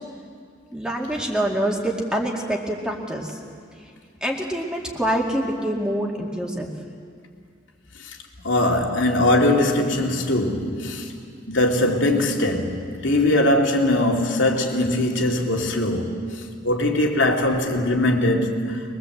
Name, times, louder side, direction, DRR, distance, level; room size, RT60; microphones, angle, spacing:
voice 1, 0.7-3.4 3.8-3.9 4.2-6.7, right 1 dB, 5° right, -1 dB, 2.2 m, -25 dB
voice 2, 8.4-11.1 11.5-18.8, left 1 dB, 85° left, 0 dB, 2.7 m, -21 dB
23.0 x 22.5 x 8.0 m, 2.2 s
head